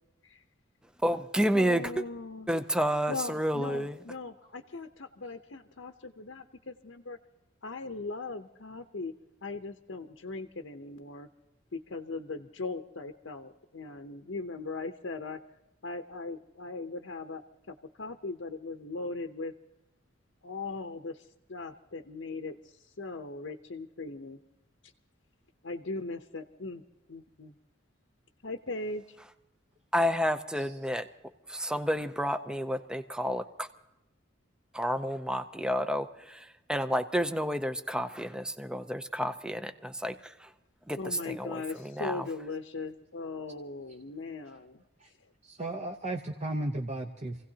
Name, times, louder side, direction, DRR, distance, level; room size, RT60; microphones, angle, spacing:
voice 1, 1.0-1.8 2.5-4.0 29.9-31.1 31.5-33.7 34.7-36.4 36.7-40.5 40.9-42.3, equal, 5° right, 10 dB, 0.5 m, -30 dB
voice 2, 1.5-2.5 3.1-7.2 7.6-9.1 9.4-11.3 11.7-15.4 15.8-17.4 17.7-19.5 20.4-24.4 25.6-26.8 27.1-27.5 28.4-29.2 41.0-44.8 45.2-45.3, left 3 dB, 65° left, 6 dB, 0.8 m, -39 dB
voice 3, 45.4-47.4, right 1 dB, 35° right, 3 dB, 0.8 m, -35 dB
27.0 x 16.5 x 2.8 m, 0.94 s
head